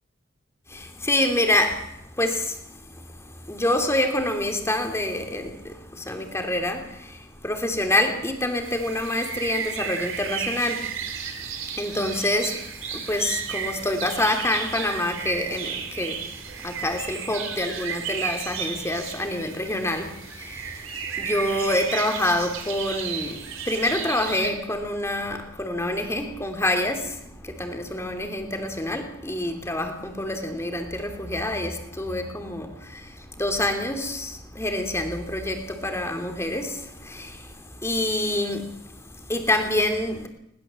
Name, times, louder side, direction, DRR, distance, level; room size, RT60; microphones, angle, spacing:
voice 1, 0.7-20.9 21.2-40.3, left 1 dB, 10° left, 5 dB, 3.0 m, -27 dB
sound 1, 8.6-24.5, right 7 dB, 60° right, 4.0 m, -33 dB
21.5 x 20.0 x 7.6 m, 0.77 s
head